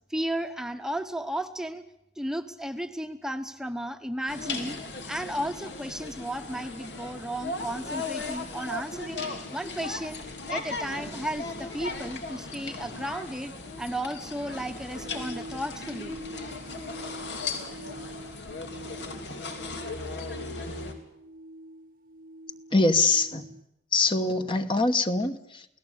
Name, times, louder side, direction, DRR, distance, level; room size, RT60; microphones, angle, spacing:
voice 1, 0.1-1.8 2.2-10.2 10.5-13.5 13.8-16.1, right 1 dB, 5° right, 8 dB, 1.0 m, -34 dB
sound 1, 4.3-20.9, left 3 dB, 80° left, 3.1 m, -37 dB
sound 2, 15.0-23.6, right 1 dB, 50° right, 0.9 m, -45 dB
voice 2, 22.7-23.5 23.9-25.7, left 3 dB, 30° left, 8 dB, 1.1 m, -24 dB
28.5 x 17.5 x 8.7 m, 0.82 s
head